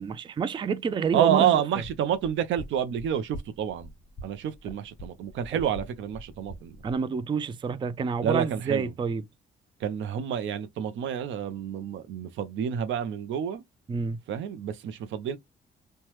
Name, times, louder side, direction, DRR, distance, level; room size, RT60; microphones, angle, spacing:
voice 1, 0.0-1.6 6.8-9.2 13.9-14.2, right 6 dB, 25° right, 0.3 m, -28 dB
voice 2, 1.1-3.9 4.2-6.8 8.2-8.9 9.8-13.6 14.3-15.4, right 9 dB, 75° right, 0.5 m, -28 dB
sound 1, 1.7-7.0, equal, 35° left, 1.0 m, -45 dB
3.0 x 2.2 x 2.9 m
cardioid pair, 90°, 20 cm